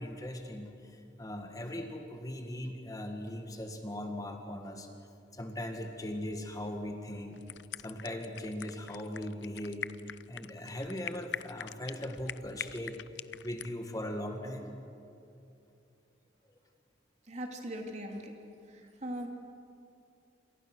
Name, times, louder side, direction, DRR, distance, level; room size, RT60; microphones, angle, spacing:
voice 1, 0.0-4.9 5.3-7.4 7.8-9.9 10.3-13.0 13.4-14.7, left 1 dB, 20° left, 4 dB, 1.8 m, -39 dB
sound 1, 7.3-13.7, left 9 dB, 75° left, 0.6 m, -43 dB
voice 2, 17.3-18.4 18.7-19.3, equal, 40° right, 2 dB, 3.0 m, -40 dB
28.0 x 27.5 x 6.3 m, 2.7 s
head